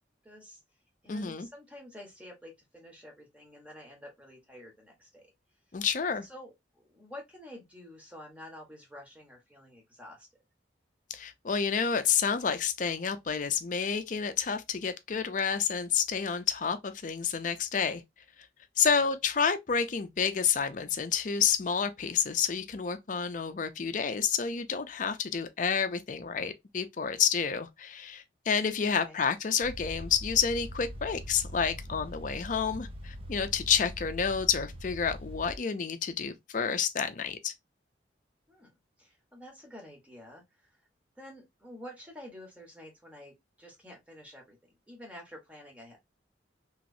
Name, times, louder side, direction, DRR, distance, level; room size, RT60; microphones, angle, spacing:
voice 1, 0.2-0.6 1.0-5.3 6.2-10.3 18.8-19.1 29.0-29.2 38.5-38.7 39.0-40.8 41.2-44.6 44.9-46.0, left 1 dB, 5° right, 1.1 m, -49 dB
voice 2, 1.1-1.5 5.7-6.2 11.1-18.0 18.8-37.5, left 6 dB, 45° left, 0.4 m, -29 dB
sound 1, 29.6-35.6, equal, 30° right, 0.4 m, -42 dB
3.0 x 3.0 x 2.5 m
head